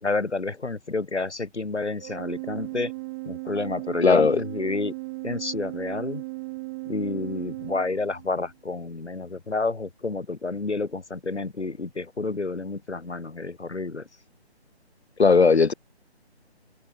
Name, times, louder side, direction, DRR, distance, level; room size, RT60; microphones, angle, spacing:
voice 1, 0.0-2.9 3.2-4.9 5.2-6.2 6.8-14.1, left 3 dB, 90° left, 3.3 m, -30 dB
Organ, 2.0-8.5, right 26 dB, 10° right, 1.4 m, -36 dB
voice 2, 4.0-4.4 15.2-15.7, left 4 dB, 70° left, 1.8 m, -17 dB
figure-of-eight pair, 160°, 33 cm